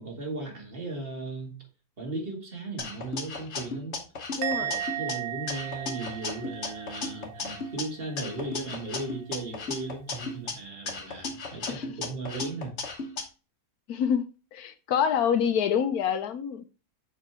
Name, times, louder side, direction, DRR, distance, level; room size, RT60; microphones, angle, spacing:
voice 1, 0.0-1.6 2.0-4.0 4.6-4.7 5.0-12.7, right 2 dB, 40° right, 1.8 m, -36 dB
sound 1, 2.8-5.1 5.5-7.8 8.2-10.5 10.9-13.2, left 3 dB, 50° left, 1.2 m, -35 dB
voice 2, 4.4-4.8 11.7-11.9 13.9-14.3 14.5-16.6, left 8 dB, 75° left, 1.2 m, -26 dB
Musical instrument, 4.4-7.8 8.1-8.5, right 12 dB, 75° right, 1.3 m, -36 dB
6.8 x 3.5 x 4.3 m
omnidirectional pair, 1.6 m